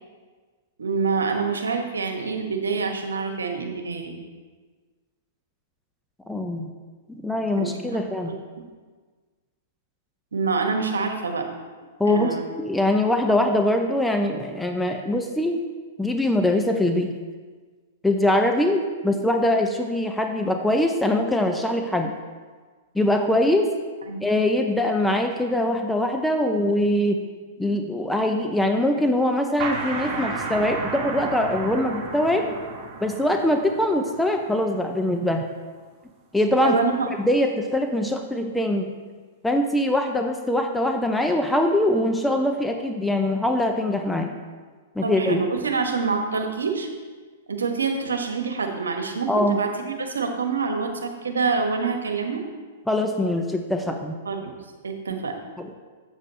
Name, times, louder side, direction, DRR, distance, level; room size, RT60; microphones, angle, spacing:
voice 1, 0.8-4.2 7.6-8.0 10.3-11.5 12.0-12.5 24.1-24.2 36.6-37.1 45.0-46.9 47.5-52.4 54.2-54.6 54.8-55.4, right 4 dB, 80° right, 4 dB, 1.2 m, -26 dB
voice 2, 6.3-6.7 7.2-8.4 12.0-15.6 16.0-17.1 18.0-22.1 22.9-23.7 24.2-27.2 27.6-32.5 33.0-35.5 36.3-36.8 37.2-38.9 39.4-44.3 45.0-45.4 49.3-49.6 52.9-54.2 55.6-55.7, left 1 dB, 5° left, 4 dB, 0.7 m, -22 dB
sound 1, 29.6-35.0, right 3 dB, 30° right, 1.9 m, -33 dB
7.9 x 7.5 x 4.1 m, 1.4 s
hypercardioid pair, 110°, 0 cm